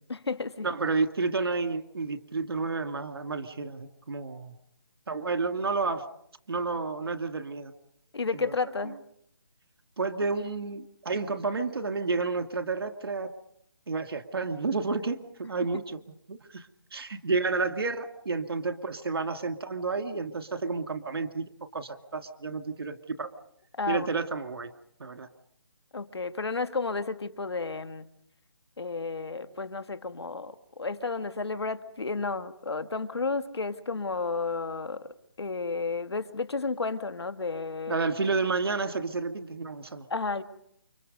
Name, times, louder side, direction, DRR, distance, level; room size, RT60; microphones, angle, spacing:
voice 1, 0.1-0.7 8.1-9.0 23.7-24.1 25.9-28.1 28.8-38.1 40.1-40.4, left 4 dB, 85° left, 10 dB, 1.9 m, -32 dB
voice 2, 0.6-4.5 5.1-6.0 6.5-7.7 8.3-8.5 10.0-13.3 13.9-16.0 16.3-16.7 16.9-21.4 21.7-23.3 23.9-24.7 25.0-25.3 37.9-40.1, right 4 dB, 65° right, 8 dB, 2.2 m, -30 dB
29.5 x 25.5 x 5.4 m, 0.72 s
hypercardioid pair, 170°, 13 cm